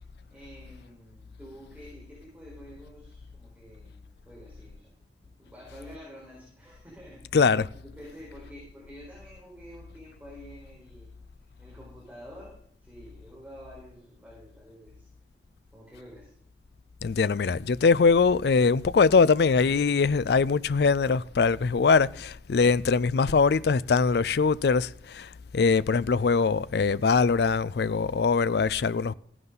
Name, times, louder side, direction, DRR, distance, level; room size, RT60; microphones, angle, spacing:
voice 1, 0.3-4.9 5.2-7.4 7.7-11.1 11.4-15.1 15.7-16.3, equal, 10° right, 4.5 m, -49 dB
voice 2, 7.3-7.7 17.0-29.1, left 5 dB, 60° left, 0.4 m, -22 dB
15.5 x 11.0 x 4.0 m
head